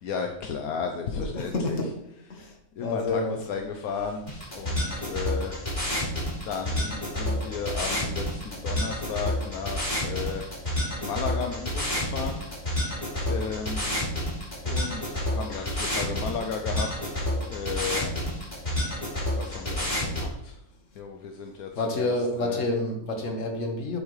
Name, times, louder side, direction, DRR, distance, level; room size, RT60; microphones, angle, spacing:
voice 1, 0.0-1.8 2.3-2.5 2.8-5.6 6.4-10.4 11.0-12.8 13.3-14.0 14.6-17.2 17.5-18.1 19.3-20.6 21.0-22.6, left 6 dB, 80° left, 4 dB, 1.2 m, -34 dB
voice 2, 1.1-1.9 2.3-2.5 2.8-3.4 7.3-7.4 21.8-24.0, left 2 dB, 60° left, 3 dB, 1.7 m, -28 dB
sound 1, 4.3-20.3, left 1 dB, 30° left, 3.2 m, -29 dB
8.3 x 8.2 x 3.2 m, 0.78 s
omnidirectional pair, 1.5 m